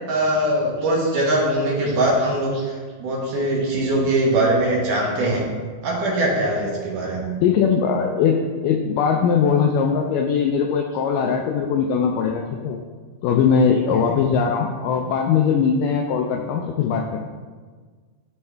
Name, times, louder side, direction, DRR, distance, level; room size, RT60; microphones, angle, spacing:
voice 1, 0.1-5.5 5.8-7.3 13.7-13.8, right 1 dB, 65° right, -3 dB, 2.7 m, -21 dB
voice 2, 7.4-12.8 13.2-17.3, left 6 dB, 85° left, 2 dB, 1.9 m, -20 dB
12.5 x 4.5 x 3.3 m, 1.5 s
omnidirectional pair, 4.3 m